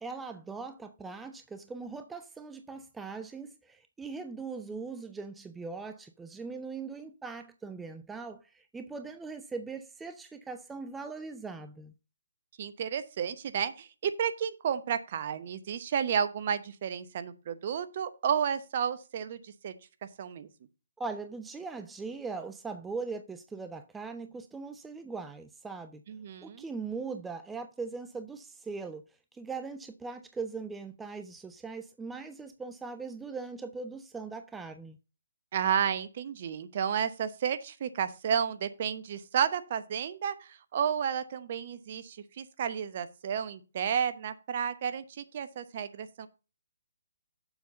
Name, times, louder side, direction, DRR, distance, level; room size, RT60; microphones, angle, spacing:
voice 1, 0.0-11.9 21.0-26.0 26.4-29.0 29.3-35.0, right 4 dB, 5° right, 0.5 m, -40 dB
voice 2, 12.6-19.7 20.0-20.5 26.1-26.7 35.5-46.3, right 8 dB, 45° right, 0.9 m, -32 dB
7.1 x 5.5 x 5.3 m
figure-of-eight pair, 140°, 0 cm